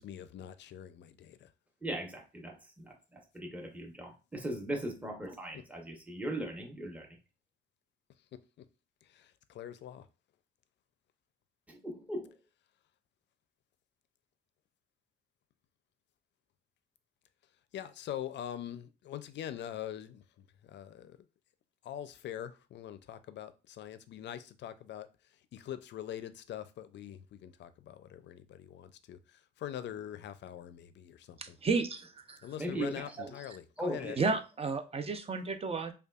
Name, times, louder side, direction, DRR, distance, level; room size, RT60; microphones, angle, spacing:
voice 1, 0.0-1.5 5.5-5.6 9.0-10.1 17.7-21.2 21.8-31.6 32.4-34.3, left 10 dB, 65° left, 0.5 m, -43 dB
voice 2, 1.8-2.9 3.3-7.1 11.7-12.3 32.6-33.3 33.8-34.1, right 1 dB, 5° right, 0.9 m, -38 dB
voice 3, 31.4-32.4 34.2-35.9, right 4 dB, 30° right, 0.6 m, -32 dB
5.2 x 2.3 x 2.4 m
cardioid pair, 90°, 20 cm